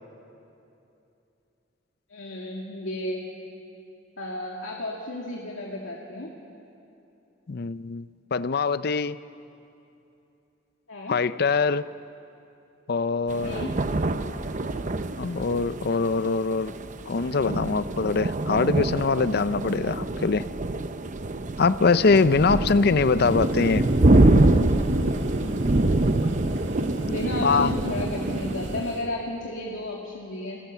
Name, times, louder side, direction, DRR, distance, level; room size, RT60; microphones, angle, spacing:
voice 1, 2.1-3.2 4.2-6.3 10.9-11.2 13.4-13.7 22.5-22.7 27.1-30.6, left 1 dB, 90° left, -2 dB, 2.2 m, -33 dB
voice 2, 7.5-9.2 11.1-11.9 12.9-13.6 15.2-16.7 17.1-20.5 21.6-23.8 27.4-27.7, left 4 dB, 50° left, 15 dB, 0.5 m, -23 dB
sound 1, 13.3-28.8, right 2 dB, 40° right, 0.8 m, -25 dB
sound 2, 23.1-29.2, equal, 65° right, 1.8 m, -41 dB
29.0 x 18.0 x 7.2 m, 2.8 s
head